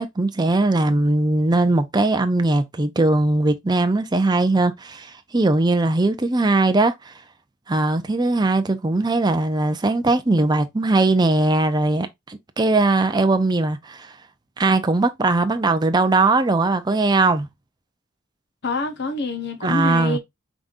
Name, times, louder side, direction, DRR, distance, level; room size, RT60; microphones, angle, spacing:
voice 1, 0.0-7.1 7.7-14.1 14.6-17.5 19.6-20.2, right 2 dB, 20° right, 0.5 m, -20 dB
voice 2, 18.6-20.2, left 3 dB, 55° left, 1.0 m, -26 dB
5.0 x 3.6 x 2.5 m
head